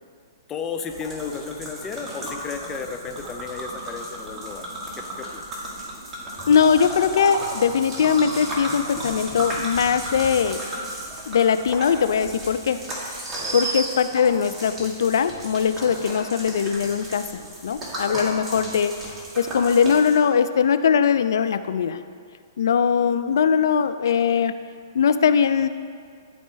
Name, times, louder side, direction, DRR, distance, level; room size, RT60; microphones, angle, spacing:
voice 1, 0.5-4.6 5.0-5.5 13.4-13.6, left 5 dB, 20° left, 5 dB, 0.5 m, -33 dB
sound 1, 0.9-20.2, right 1 dB, 15° right, 1.9 m, -34 dB
voice 2, 6.5-10.6 11.3-12.8 13.5-18.9 19.4-22.0 22.6-24.5 24.9-25.7, left 7 dB, 70° left, 11 dB, 0.4 m, -21 dB
sound 2, 7.7-8.8 11.8-11.9 13.0-14.3, right 4 dB, 70° right, 1.5 m, -33 dB
12.5 x 4.3 x 3.4 m, 2.1 s
hypercardioid pair, 130°, 2 cm